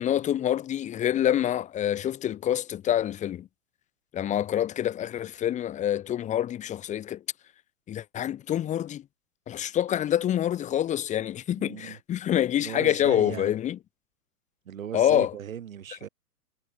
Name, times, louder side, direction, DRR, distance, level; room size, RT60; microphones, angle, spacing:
voice 1, 0.0-3.5 4.1-7.2 7.9-9.0 9.5-13.8 14.9-15.3, left 11 dB, 15° left, 1.4 m, -26 dB
voice 2, 11.6-12.0 12.6-13.5 14.7-16.1, right 9 dB, 60° right, 3.6 m, -37 dB
figure-of-eight pair, 115°, 45 cm